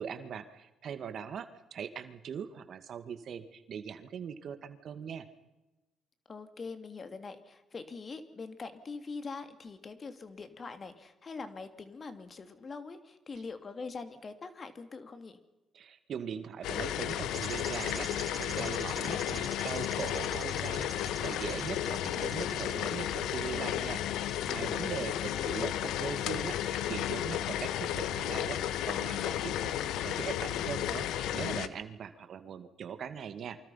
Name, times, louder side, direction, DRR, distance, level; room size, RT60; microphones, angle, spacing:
voice 1, 0.0-5.3 15.7-33.6, right 7 dB, 60° right, 10 dB, 2.1 m, -41 dB
voice 2, 6.3-15.4 24.7-25.5, left 4 dB, 40° left, 9 dB, 3.0 m, -43 dB
sound 1, 16.6-31.7, left 11 dB, 80° left, 1.2 m, -33 dB
sound 2, 17.3-22.9, right 4 dB, 30° right, 1.5 m, -45 dB
28.0 x 25.0 x 5.8 m, 1.1 s
supercardioid pair, 70°, 0 cm